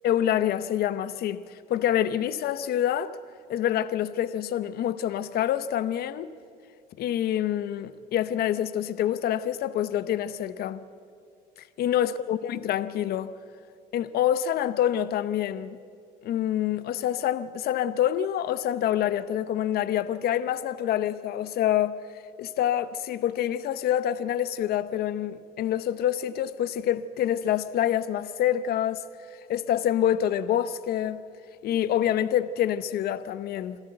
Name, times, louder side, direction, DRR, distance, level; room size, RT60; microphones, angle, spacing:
voice 1, 0.0-1.4 1.7-3.2 3.5-6.3 7.0-10.8 11.8-13.3 13.9-15.8 16.2-22.0 22.4-29.0 29.5-31.2 31.6-33.8, left 11 dB, 65° left, 0.8 m, -26 dB
26.5 x 13.0 x 7.9 m
cardioid pair, 110°, 17 cm